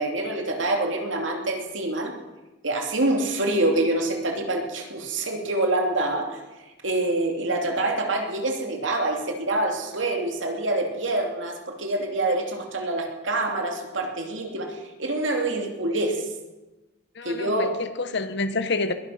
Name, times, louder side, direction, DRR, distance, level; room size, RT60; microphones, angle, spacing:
voice 1, 0.0-2.1 2.6-6.4 6.8-16.2 17.2-17.8, right 2 dB, 75° right, 2.8 m, -26 dB
voice 2, 17.2-18.9, left 3 dB, 65° left, 1.2 m, -28 dB
20.5 x 11.5 x 5.8 m
head